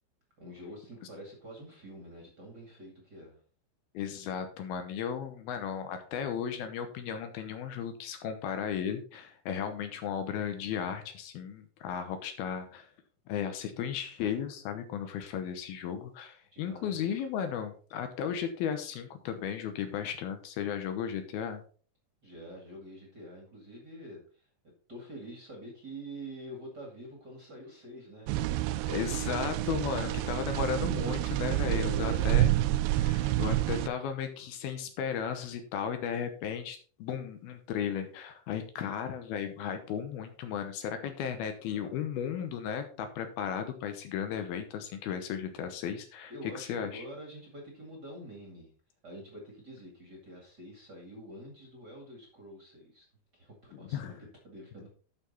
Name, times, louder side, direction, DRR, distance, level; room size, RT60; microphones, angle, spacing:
voice 1, 0.4-3.4 16.5-17.2 22.2-24.5 24.9-29.2 31.5-32.4 41.7-42.0 46.3-48.7 49.0-53.1 53.3-54.1 54.4-54.9, equal, 35° right, 1 dB, 1.9 m, -46 dB
voice 2, 3.9-12.9 13.3-21.6 28.9-32.5 32.9-47.0 53.7-54.2, left 8 dB, 75° left, 8 dB, 2.7 m, -35 dB
sound 1, 28.3-33.9, right 14 dB, 80° right, 2.4 m, -28 dB
11.5 x 5.9 x 4.1 m, 0.42 s
omnidirectional pair, 4.7 m